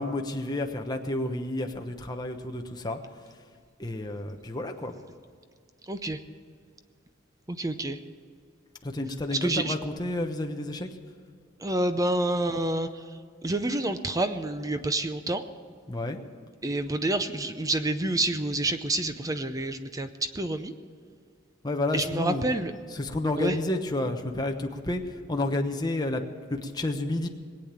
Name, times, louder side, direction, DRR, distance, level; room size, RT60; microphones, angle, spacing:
voice 1, 0.0-3.0 3.8-4.9 8.8-10.9 15.9-16.2 21.6-22.4 23.0-25.0 25.3-26.2 26.5-27.3, left 2 dB, 20° left, 4 dB, 1.1 m, -30 dB
voice 2, 5.9-6.2 7.5-8.0 9.3-9.8 11.6-13.0 13.4-15.4 16.6-20.1 20.3-20.7 21.9-22.7 23.4-23.6, right 2 dB, 15° right, 9 dB, 0.6 m, -28 dB
21.0 x 8.6 x 7.4 m, 2.1 s
head